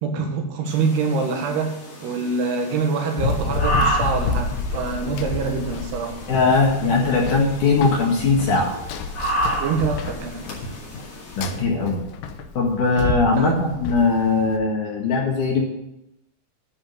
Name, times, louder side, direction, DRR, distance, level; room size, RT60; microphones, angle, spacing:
voice 1, 0.0-6.2 9.6-10.5 13.4-13.7, right 4 dB, 70° right, 3 dB, 3.3 m, -25 dB
sound 1, 0.7-11.6, right 1 dB, 40° left, 2.7 m, -31 dB
Run, 3.2-14.6, left 4 dB, 85° left, 2.0 m, -30 dB
voice 2, 6.3-8.7 11.4-12.0 12.6-15.6, left 3 dB, 55° left, -2 dB, 2.5 m, -20 dB
10.0 x 5.0 x 8.0 m, 0.88 s
omnidirectional pair, 5.1 m